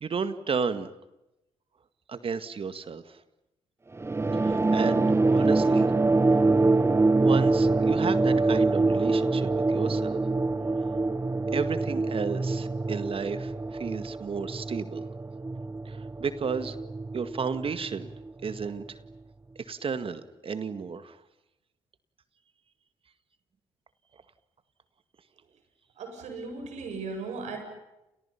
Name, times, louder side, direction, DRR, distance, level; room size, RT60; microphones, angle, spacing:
voice 1, 0.0-0.9 2.1-3.2 4.4-5.9 7.2-10.2 11.5-15.0 15.9-16.8 17.1-18.1 18.4-19.0 19.7-21.2, right 5 dB, 50° right, 11 dB, 1.9 m, -33 dB
sound 1, 4.0-18.9, right 3 dB, 20° right, 1.0 m, -25 dB
voice 2, 26.0-27.6, right 4 dB, 70° right, 4 dB, 8.0 m, -37 dB
29.5 x 29.0 x 5.8 m, 0.93 s
supercardioid pair, 50°, 12 cm